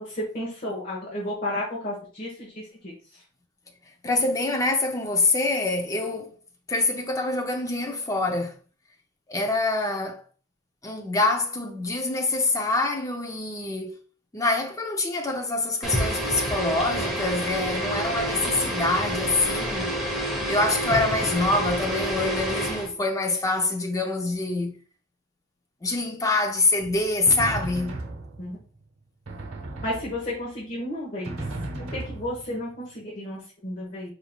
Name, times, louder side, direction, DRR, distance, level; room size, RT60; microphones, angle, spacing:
voice 1, 0.1-2.9 28.4-28.6 29.8-31.4 31.9-34.1, left 1 dB, 40° left, 1.1 m, -32 dB
voice 2, 4.0-6.4 6.7-8.5 9.3-10.2 10.8-14.0 14.3-19.9 20.5-24.8 25.8-28.0, left 2 dB, 15° left, 0.5 m, -25 dB
sound 1, 15.8-22.9, equal, ahead, 0.8 m, -28 dB
Drum, 26.8-28.7 29.3-30.6 31.2-32.8, right 2 dB, 85° right, 0.8 m, -36 dB
4.4 x 3.4 x 2.3 m
head